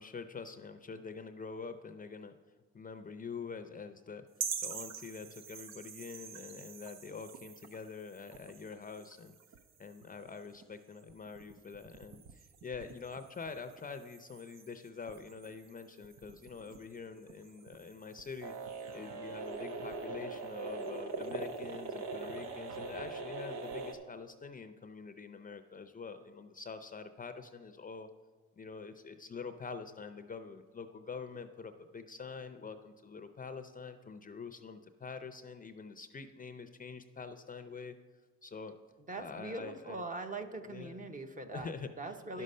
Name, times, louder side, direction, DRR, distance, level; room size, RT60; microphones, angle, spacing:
voice 1, 0.0-2.3 2.7-4.3 4.6-9.4 9.8-18.5 18.9-28.1 28.6-37.9 38.4-38.7 39.2-40.0 40.5-41.1 41.5-41.9 42.3-42.4, left 5 dB, 30° left, 9 dB, 0.6 m, -45 dB
sound 1, 4.3-24.0, right 7 dB, 60° right, 0.8 m, -49 dB
sound 2, 18.4-23.9, right 3 dB, 85° right, 1.0 m, -41 dB
voice 2, 39.1-41.7 42.0-42.4, right 2 dB, 25° right, 6 dB, 0.8 m, -42 dB
11.0 x 6.5 x 5.4 m, 1.4 s
cardioid pair, 90°, 30 cm